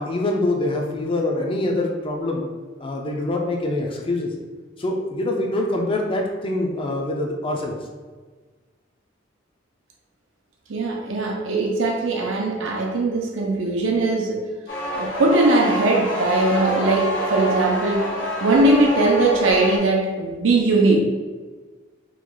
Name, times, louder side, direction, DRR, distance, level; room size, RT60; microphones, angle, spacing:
voice 1, 0.0-2.4 2.8-4.3 4.8-7.8, left 2 dB, 25° left, 1 dB, 0.4 m, -24 dB
voice 2, 10.7-14.4 14.9-18.0 18.4-21.0, right 2 dB, 80° right, 1 dB, 0.6 m, -20 dB
sound 1, 14.7-19.8, equal, 70° left, 0.9 m, -27 dB
3.0 x 2.3 x 3.8 m, 1.4 s
head